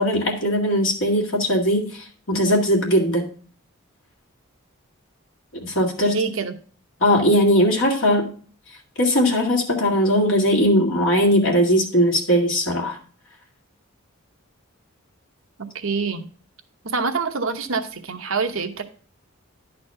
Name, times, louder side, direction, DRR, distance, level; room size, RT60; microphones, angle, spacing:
voice 1, 0.0-3.3 5.6-6.2 7.0-8.3 9.0-13.0, equal, 60° left, 1 dB, 2.3 m, -19 dB
voice 2, 6.0-6.5 15.6-16.2 16.8-18.8, right 4 dB, 65° right, 7 dB, 0.9 m, -26 dB
11.0 x 4.2 x 5.5 m, 0.42 s
head